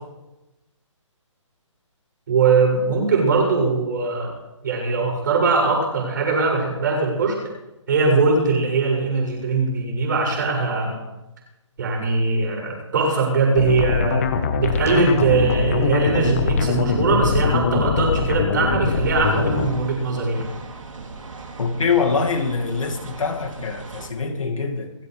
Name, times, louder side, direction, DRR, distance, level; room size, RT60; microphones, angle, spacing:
voice 1, 2.3-4.3 4.6-7.4 7.9-11.0 11.8-14.2 14.5-20.5, right 4 dB, 40° right, 7.6 m, -21 dB
sound 1, 13.5-19.7, left 5 dB, 25° left, 1.3 m, -22 dB
sound 2, 18.8-24.1, right 4 dB, 80° right, 3.2 m, -39 dB
voice 2, 21.6-24.9, left 5 dB, 90° left, 2.3 m, -24 dB
23.5 x 15.5 x 3.4 m
hypercardioid pair, 175°, 16 cm